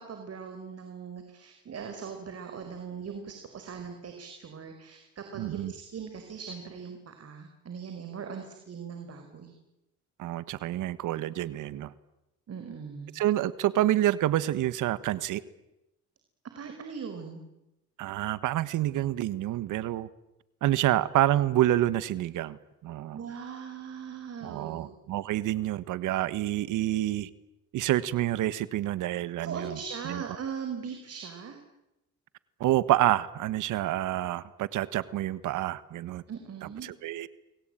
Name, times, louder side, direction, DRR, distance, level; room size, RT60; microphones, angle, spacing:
voice 1, 0.0-9.5 12.5-13.1 16.5-17.4 23.1-24.9 29.4-31.6 36.3-36.9, right 6 dB, 55° right, 6 dB, 4.8 m, -40 dB
voice 2, 5.3-5.7 10.2-11.9 13.1-15.4 18.0-20.1 20.6-23.2 24.4-27.3 27.7-29.8 30.1-30.2 32.6-36.2 36.8-37.3, right 14 dB, 85° right, 16 dB, 1.4 m, -28 dB
29.5 x 22.0 x 9.1 m, 0.92 s
cardioid pair, 90°, 30 cm